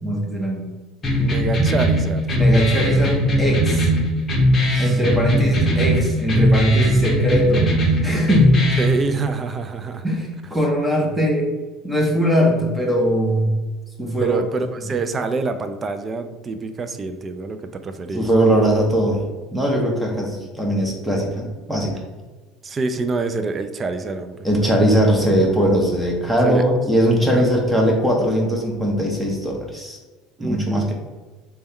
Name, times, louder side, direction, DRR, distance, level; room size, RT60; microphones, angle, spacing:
voice 1, 0.0-0.7 2.3-3.9 4.8-7.7 8.0-8.6 10.0-11.5 11.8-13.6 14.0-14.4 18.1-19.2 19.5-21.9 24.4-30.0 30.4-30.9, equal, 5° right, -1 dB, 0.9 m, -20 dB
sound 1, 1.0-9.0, equal, 25° left, 0.9 m, -19 dB
voice 2, 1.1-2.2 4.7-5.0 5.5-5.6 8.8-10.0 14.2-18.3 22.6-24.5 26.4-26.6 27.3-27.5 30.4-30.9, right 4 dB, 30° right, 8 dB, 0.3 m, -26 dB
3.4 x 2.2 x 4.2 m, 1.2 s
supercardioid pair, 105°, 0 cm